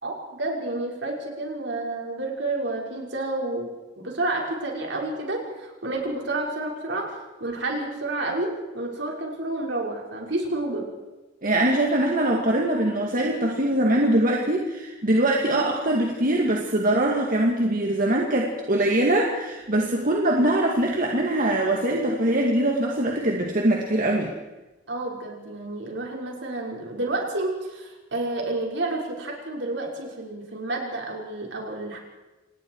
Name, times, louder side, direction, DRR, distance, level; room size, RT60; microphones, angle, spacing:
voice 1, 0.0-10.9 24.9-32.0, right 2 dB, 70° right, 0 dB, 5.4 m, -30 dB
voice 2, 11.4-24.3, right 1 dB, 50° right, 0 dB, 2.2 m, -22 dB
27.5 x 20.0 x 4.8 m, 1.1 s
head